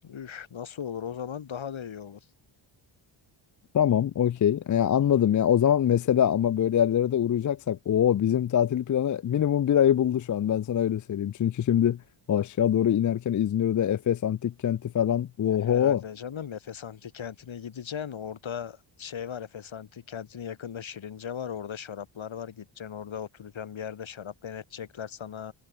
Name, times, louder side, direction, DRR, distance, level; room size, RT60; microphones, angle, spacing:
voice 1, 0.0-2.2 15.5-25.5, left 8 dB, 70° left, 7.9 m, -38 dB
voice 2, 3.7-12.0 12.3-16.0, left 9 dB, 40° left, 0.5 m, -24 dB
cardioid pair, 95°, 49 cm